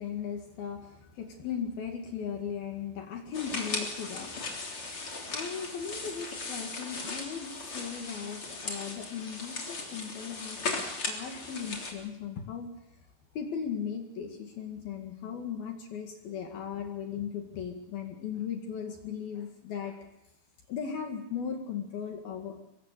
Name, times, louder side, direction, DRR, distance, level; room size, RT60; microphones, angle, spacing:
voice 1, 0.0-12.7 13.4-20.0 20.7-22.6, left 7 dB, 60° left, 3 dB, 3.7 m, -37 dB
sound 1, 3.3-11.9, left 3 dB, 30° left, 3.7 m, -37 dB
24.5 x 23.5 x 6.7 m, 0.87 s
omnidirectional pair, 5.2 m